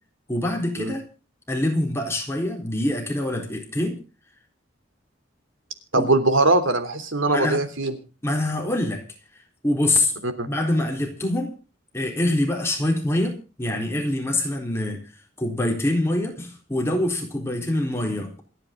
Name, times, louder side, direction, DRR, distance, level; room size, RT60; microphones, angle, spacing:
voice 1, 0.3-1.0 1.5-4.0 6.0-6.1 7.2-7.6 8.2-9.0 9.6-10.1 10.5-11.5 11.9-15.1 15.4-18.3, left 1 dB, 15° left, 2 dB, 4.0 m, -25 dB
voice 2, 5.9-7.9 10.2-10.5, right 2 dB, 85° right, 10 dB, 3.3 m, -21 dB
28.0 x 9.8 x 3.8 m, 0.34 s
head